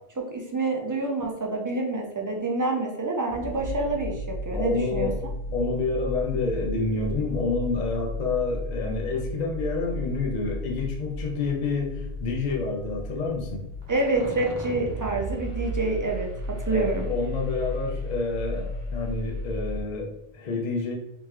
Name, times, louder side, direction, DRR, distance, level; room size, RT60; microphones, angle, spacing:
voice 1, 0.2-5.1 13.9-17.1, right 2 dB, 30° right, 1 dB, 0.4 m, -27 dB
sound 1, 3.3-19.8, left 1 dB, 50° right, 0.9 m, -34 dB
voice 2, 4.6-5.2 5.5-13.7 16.7-21.0, left 3 dB, 50° left, 0 dB, 0.6 m, -28 dB
3.4 x 2.9 x 3.2 m, 0.82 s
omnidirectional pair, 1.1 m